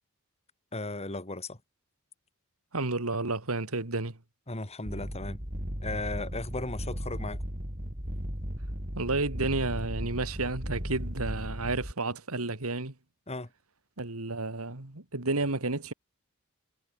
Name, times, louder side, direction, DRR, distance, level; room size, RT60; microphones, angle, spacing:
voice 1, 0.7-1.6 4.5-5.4 5.8-7.4 13.3-13.5, left 2 dB, 30° left, 2.7 m, -36 dB
voice 2, 2.7-4.2 8.9-12.9 14.0-15.9, right 3 dB, 80° right, 2.5 m, -31 dB
sound 1, 4.9-11.9, equal, 35° right, 6.8 m, -36 dB
head